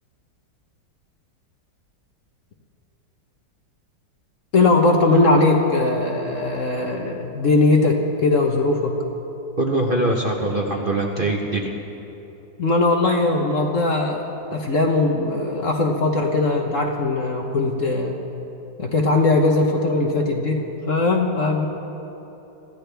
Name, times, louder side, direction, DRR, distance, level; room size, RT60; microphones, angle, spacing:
voice 1, 4.5-8.9 12.6-18.2 18.8-20.6 20.9-21.7, left 2 dB, 50° left, 2 dB, 1.2 m, -20 dB
voice 2, 9.6-11.8, right 2 dB, 35° right, -1 dB, 1.1 m, -22 dB
24.5 x 14.0 x 3.4 m, 3.0 s
omnidirectional pair, 2.0 m